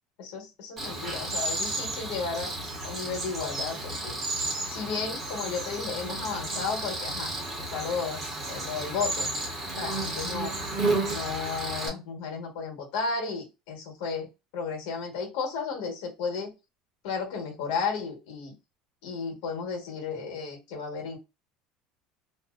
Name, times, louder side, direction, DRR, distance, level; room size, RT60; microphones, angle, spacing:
voice 1, 0.2-2.5 2.8-4.2 4.7-7.3 7.7-9.3 9.8-10.5 11.1-16.5 17.0-18.5 19.0-21.2, left 5 dB, 80° left, 2 dB, 1.1 m, -33 dB
Cricket, 0.8-11.9, right 2 dB, 25° right, 0.9 m, -32 dB
2.6 x 2.0 x 2.3 m, 0.26 s
cardioid pair, 145°, 0 cm